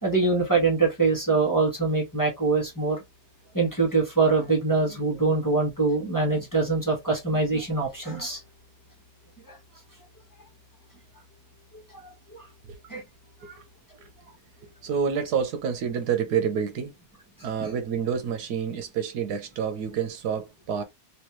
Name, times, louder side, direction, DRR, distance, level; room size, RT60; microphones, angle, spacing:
voice 1, 0.0-3.0 3.5-8.4 9.5-9.6 12.3-12.4 12.9-13.0 13.4-13.5 17.6-17.7, right 3 dB, 15° left, 1.2 m, -24 dB
voice 2, 14.6-16.9 17.4-20.8, right 7 dB, 85° right, 1.3 m, -28 dB
3.3 x 3.0 x 2.9 m
omnidirectional pair, 1.7 m